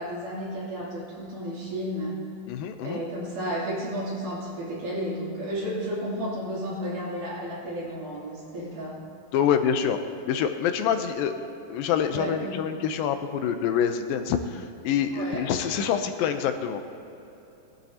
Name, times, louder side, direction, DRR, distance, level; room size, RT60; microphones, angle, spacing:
voice 1, 0.0-2.2 2.8-9.0 10.9-11.1 12.1-12.7 15.1-15.5, equal, 65° right, -6 dB, 4.4 m, -32 dB
voice 2, 2.5-3.0 9.3-10.0 10.2-11.3 11.7-16.8, left 8 dB, 90° left, 7 dB, 2.5 m, -26 dB
20.0 x 12.0 x 2.9 m, 3.0 s
omnidirectional pair, 4.0 m